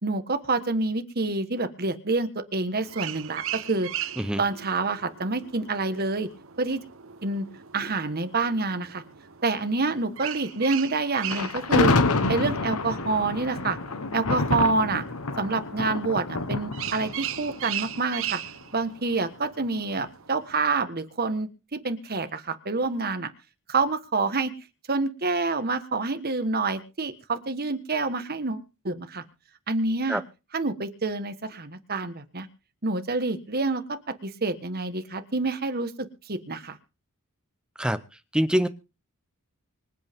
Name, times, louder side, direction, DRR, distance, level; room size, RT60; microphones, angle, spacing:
voice 1, 0.0-3.9 4.4-6.3 6.6-6.8 7.2-7.4 7.7-9.0 9.4-11.9 12.3-13.8 14.1-15.0 15.4-18.4 18.7-23.3 23.7-24.5 24.9-29.2 29.7-30.2 30.5-32.5 32.8-35.9 36.3-36.8, right 3 dB, 45° right, 9 dB, 1.5 m, -27 dB
sound 1, 2.8-20.5, right 11 dB, 60° right, 1.1 m, -39 dB
Thunder, 11.3-18.5, left 3 dB, 75° left, 1.2 m, -27 dB
voice 2, 38.3-38.7, equal, 5° right, 10 dB, 0.8 m, -24 dB
25.0 x 8.4 x 3.6 m, 0.31 s
head